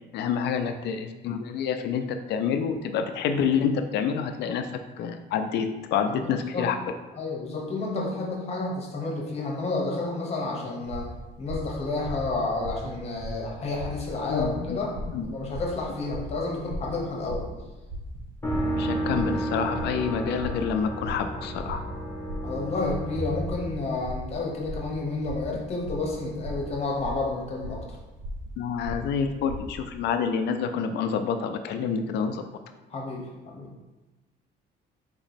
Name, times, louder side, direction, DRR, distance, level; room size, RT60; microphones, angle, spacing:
voice 1, 0.1-4.7 5.0-6.7 14.3-14.8 15.1-15.3 18.8-21.8 28.6-32.4, left 6 dB, 65° left, 7 dB, 0.4 m, -28 dB
voice 2, 6.2-6.7 7.1-11.1 11.4-14.9 15.2-17.5 22.4-28.0 32.9-33.7, left 3 dB, 35° left, -1 dB, 1.0 m, -30 dB
sound 1, 10.8-30.0, equal, 80° right, 0.9 m, -39 dB
sound 2, 18.4-24.3, right 1 dB, 10° left, 0.6 m, -32 dB
4.3 x 3.0 x 4.1 m, 1.1 s
cardioid pair, 160°, 19 cm